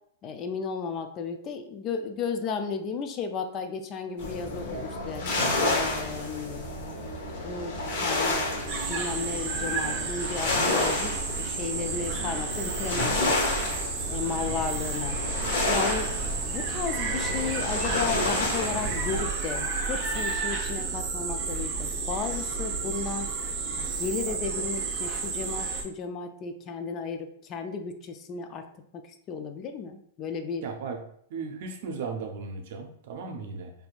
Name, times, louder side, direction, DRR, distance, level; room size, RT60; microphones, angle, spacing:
voice 1, 0.2-5.2 5.7-6.7 7.4-8.5 8.9-13.5 14.1-15.2 15.7-23.3 23.8-28.7 28.9-29.0 29.3-30.6, left 5 dB, 35° left, 7 dB, 0.4 m, -34 dB
sound 1, 4.2-19.2, left 2 dB, 60° left, 1.0 m, -30 dB
sound 2, 8.7-25.8, right 4 dB, 35° right, 0.9 m, -31 dB
voice 2, 30.6-31.0 31.3-33.7, right 4 dB, 60° right, 4 dB, 0.6 m, -36 dB
4.2 x 2.6 x 2.4 m, 0.70 s
hypercardioid pair, 125°, 0 cm